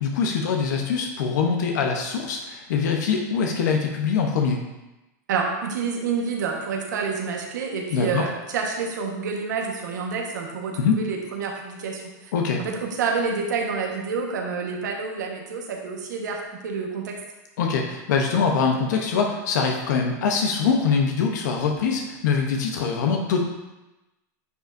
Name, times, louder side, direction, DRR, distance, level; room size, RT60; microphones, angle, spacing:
voice 1, 0.0-4.6 7.9-8.3 10.8-11.0 12.3-12.6 17.6-23.4, left 5 dB, 80° left, 2 dB, 0.9 m, -23 dB
voice 2, 5.3-12.3 12.6-17.2, right 5 dB, 90° right, 1 dB, 1.3 m, -28 dB
9.5 x 5.4 x 2.6 m, 1.0 s
supercardioid pair, 115°, 10 cm